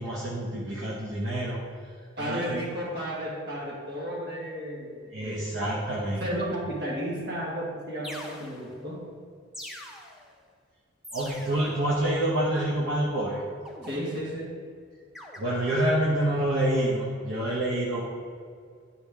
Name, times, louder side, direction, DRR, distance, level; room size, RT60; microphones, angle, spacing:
voice 1, 0.0-1.6 2.2-2.6 5.1-6.3 11.1-13.4 15.4-18.0, right 1 dB, 70° right, -5 dB, 0.9 m, -27 dB
voice 2, 2.2-5.6 6.2-9.1 13.8-14.5, equal, 55° right, -3 dB, 1.5 m, -33 dB
sound 1, 7.4-7.5 8.0-8.9 9.5-10.4 11.0-11.8 13.6-14.4 15.1-15.4, left 1 dB, ahead, 0.6 m, -43 dB
10.0 x 4.3 x 3.5 m, 2.1 s
head